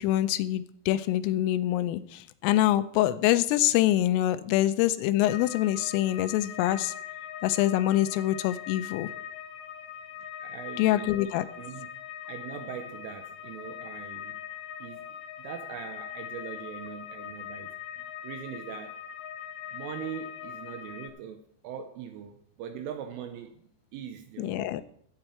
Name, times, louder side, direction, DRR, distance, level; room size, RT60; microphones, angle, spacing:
voice 1, 0.0-6.9 7.4-9.1 10.8-11.5 24.4-24.8, left 14 dB, 85° left, 12 dB, 3.2 m, -25 dB
sound 1, 5.2-21.1, left 10 dB, 70° left, 2.9 m, -41 dB
voice 2, 10.4-11.9 12.3-14.4 14.8-19.0 19.7-24.8, right 8 dB, 80° right, 6 dB, 3.4 m, -42 dB
13.5 x 8.8 x 4.4 m, 0.67 s
omnidirectional pair, 5.8 m